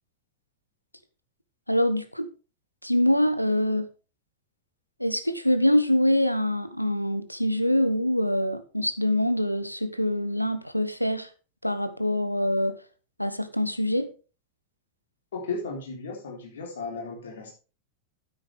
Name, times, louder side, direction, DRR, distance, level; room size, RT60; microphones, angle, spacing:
voice 1, 1.7-2.3 2.8-3.9 5.0-11.3 11.6-12.8 13.2-14.1, left 1 dB, 90° left, 0.8 m, -24 dB
voice 2, 15.3-17.5, left 4 dB, 65° left, 3.4 m, -35 dB
9.5 x 9.4 x 3.4 m
figure-of-eight pair, 90°, 0 cm